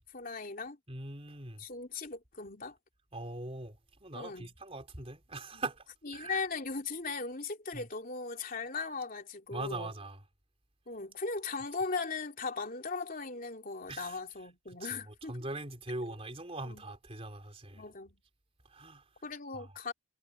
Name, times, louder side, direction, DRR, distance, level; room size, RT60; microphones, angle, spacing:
voice 1, 0.1-0.8 1.6-2.8 4.1-4.5 5.5-5.6 6.0-9.9 10.9-15.4 16.0-16.1 16.6-16.8 17.7-18.2 19.2-19.9, left 4 dB, 45° left, 3.2 m, -38 dB
voice 2, 0.9-1.6 3.1-5.9 6.1-6.4 7.7-7.8 9.5-10.2 13.9-14.2 14.7-17.8 18.7-19.0 19.5-19.7, right 2 dB, 30° right, 3.9 m, -41 dB
head